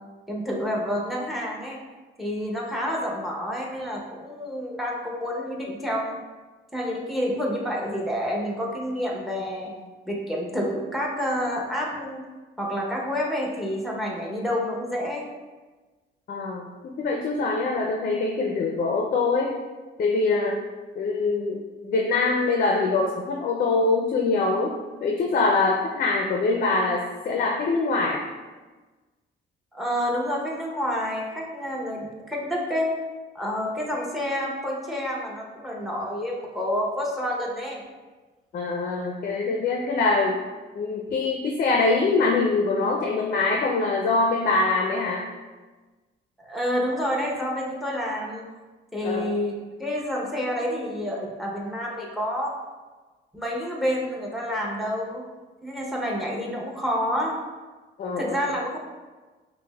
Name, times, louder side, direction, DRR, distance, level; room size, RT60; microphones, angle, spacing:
voice 1, 0.3-1.8 2.2-6.2 6.7-9.7 10.0-12.2 12.6-15.3 29.7-32.9 33.3-37.8 46.4-48.5 48.9-49.5 49.8-52.5 53.3-55.2 55.6-57.3 58.2-58.8, equal, ahead, -2 dB, 0.8 m, -28 dB
voice 2, 16.3-19.5 20.0-20.5 21.0-24.7 25.0-28.2 38.5-40.4 40.7-45.2 49.0-49.3 58.0-58.4, left 3 dB, 45° left, 0 dB, 0.4 m, -24 dB
5.8 x 2.1 x 2.2 m, 1.3 s
cardioid pair, 90°, 20 cm